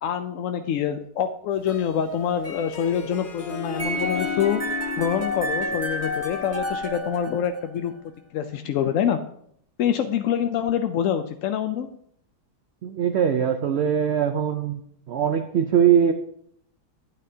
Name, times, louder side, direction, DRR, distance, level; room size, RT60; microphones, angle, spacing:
voice 1, 0.0-7.9 8.3-9.2 9.8-11.9, left 8 dB, 70° left, 7 dB, 0.8 m, -26 dB
Harp, 1.5-7.1, left 5 dB, 40° left, 0.8 m, -35 dB
sound 1, 3.8-7.9, left 1 dB, 20° right, 0.4 m, -30 dB
voice 2, 12.8-14.8 15.1-16.1, right 8 dB, 65° right, 7 dB, 0.6 m, -21 dB
11.0 x 9.3 x 2.8 m, 0.68 s
omnidirectional pair, 1.8 m